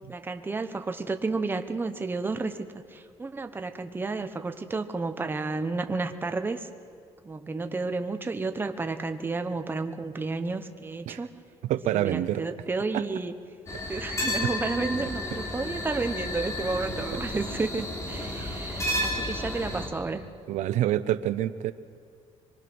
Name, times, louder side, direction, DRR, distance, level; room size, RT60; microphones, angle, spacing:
voice 1, 0.1-2.7 2.9-6.7 7.2-11.3 11.9-13.3 13.9-20.3, right 3 dB, 15° right, 7 dB, 1.1 m, -31 dB
voice 2, 11.6-12.4 12.9-13.0 18.3-18.5 20.5-21.7, right 13 dB, 85° right, 12 dB, 0.8 m, -27 dB
sound 1, 13.7-19.9, left 1 dB, 25° left, 3.4 m, -32 dB
25.0 x 23.5 x 6.2 m, 2.1 s
cardioid pair, 135°, 12 cm